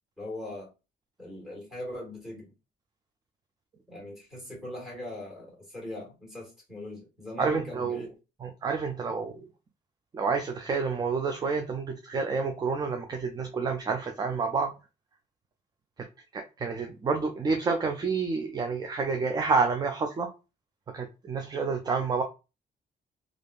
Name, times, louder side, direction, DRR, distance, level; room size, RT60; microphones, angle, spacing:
voice 1, 0.2-0.7 1.2-2.5 3.9-8.1, left 1 dB, 5° right, 1.6 m, -40 dB
voice 2, 7.4-8.0 8.4-9.5 10.1-14.7 16.3-20.3 20.9-22.2, right 4 dB, 25° right, 0.3 m, -29 dB
3.4 x 2.4 x 2.4 m
cardioid pair, 145°, 18 cm